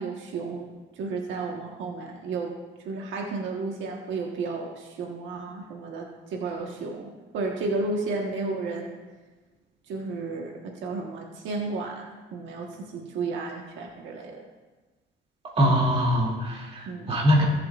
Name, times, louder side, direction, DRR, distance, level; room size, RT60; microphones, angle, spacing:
voice 1, 0.0-2.5 2.8-8.9 9.9-14.4 16.9-17.1, right 3 dB, 85° right, 0 dB, 1.4 m, -33 dB
voice 2, 15.6-17.4, equal, 30° right, -3 dB, 2.7 m, -22 dB
21.0 x 7.7 x 2.5 m, 1.3 s
cardioid pair, 150°, 19 cm